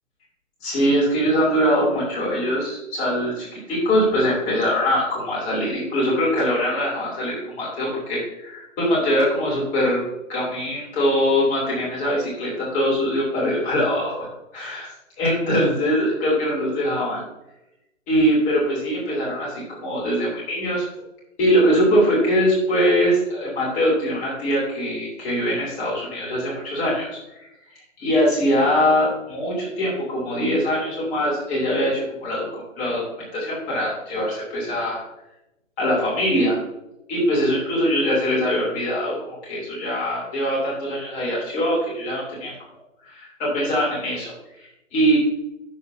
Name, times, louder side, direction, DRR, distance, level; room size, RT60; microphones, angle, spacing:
voice 1, 0.6-14.9 15.2-17.2 18.1-20.9 21.4-27.1 28.0-33.0 33.3-35.0 35.8-36.6 37.1-42.5 43.0-44.3 44.6-45.2, equal, 20° left, -6 dB, 3.3 m, -22 dB
11.0 x 8.1 x 2.8 m, 0.89 s
hypercardioid pair, 155°, 40 cm